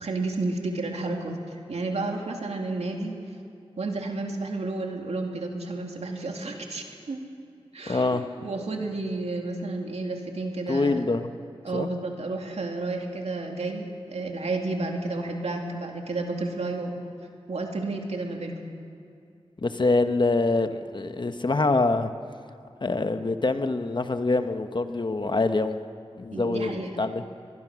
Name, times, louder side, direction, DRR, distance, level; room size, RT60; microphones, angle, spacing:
voice 1, 0.0-1.4 1.7-3.2 3.8-7.3 7.7-11.0 11.6-16.9 17.5-18.7 26.3-27.0, right 2 dB, 90° right, 2 dB, 2.6 m, -31 dB
voice 2, 7.9-8.2 10.7-11.3 11.7-11.9 19.6-22.1 22.8-25.8 26.2-27.2, left 3 dB, 45° left, 8 dB, 1.1 m, -25 dB
22.5 x 21.5 x 6.3 m, 2.5 s
wide cardioid pair, 70°, 11 cm